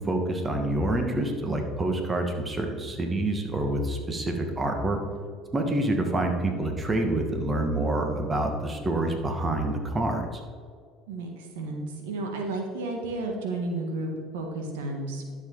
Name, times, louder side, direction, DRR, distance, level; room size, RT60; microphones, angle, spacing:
voice 1, 0.0-5.0 5.5-10.4, right 1 dB, 25° right, 3 dB, 1.7 m, -27 dB
voice 2, 11.1-15.2, right 2 dB, 90° right, 2 dB, 1.6 m, -32 dB
12.0 x 7.1 x 3.9 m, 2.1 s
supercardioid pair, 90°, 0 cm